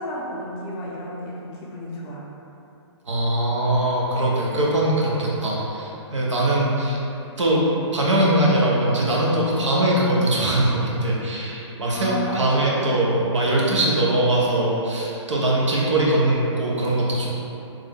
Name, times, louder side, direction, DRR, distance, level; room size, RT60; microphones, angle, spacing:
voice 1, 0.0-2.2 11.9-12.8, equal, 20° left, -5 dB, 0.5 m, -32 dB
voice 2, 3.1-7.0 7.4-7.6 7.9-17.3, right 1 dB, 85° right, -4 dB, 0.8 m, -21 dB
3.2 x 2.1 x 3.5 m, 2.9 s
hypercardioid pair, 145°, 15 cm